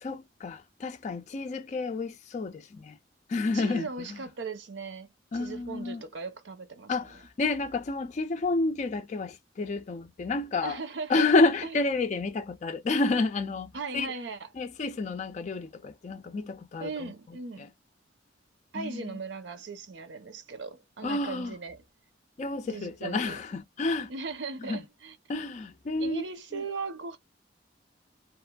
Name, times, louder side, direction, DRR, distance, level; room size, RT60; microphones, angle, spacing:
voice 1, 0.0-3.0 3.3-4.1 5.3-6.0 6.9-10.8 11.1-14.1 14.6-17.1 17.6-17.7 18.7-19.1 21.0-21.5 22.4-24.1 24.7-24.8 25.3-26.2 26.5-26.6, left 3 dB, 40° left, 0.4 m, -30 dB
voice 2, 3.5-7.2 10.6-11.3 11.6-11.8 13.7-14.5 16.8-17.7 18.7-21.8 22.7-23.4 24.1-25.2 26.0-27.2, right 4 dB, 70° right, 0.7 m, -38 dB
2.9 x 2.5 x 2.2 m
head